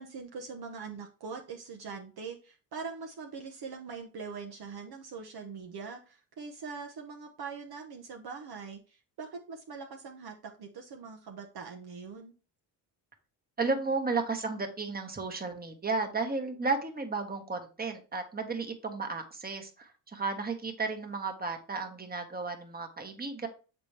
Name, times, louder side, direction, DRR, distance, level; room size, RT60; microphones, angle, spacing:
voice 1, 0.0-12.3, right 5 dB, 50° right, 2 dB, 1.1 m, -42 dB
voice 2, 13.6-23.5, right 4 dB, 20° right, 4 dB, 1.4 m, -33 dB
6.7 x 4.3 x 3.4 m, 0.35 s
supercardioid pair, 75°, 47 cm